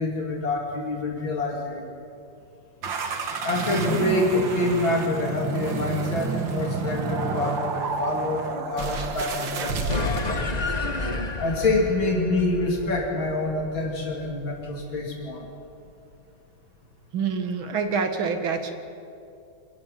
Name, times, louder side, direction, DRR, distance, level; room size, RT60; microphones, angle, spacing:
voice 1, 0.0-1.8 3.4-10.3 11.4-15.5, left 2 dB, 75° left, -1 dB, 3.9 m, -26 dB
sound 1, 2.8-10.4, right 5 dB, 70° right, 2.3 m, -30 dB
sound 2, 9.9-14.7, left 2 dB, 25° left, 1.3 m, -31 dB
voice 2, 17.1-18.7, right 5 dB, 90° right, 7 dB, 2.6 m, -26 dB
27.0 x 15.5 x 9.4 m, 2.6 s
omnidirectional pair, 2.2 m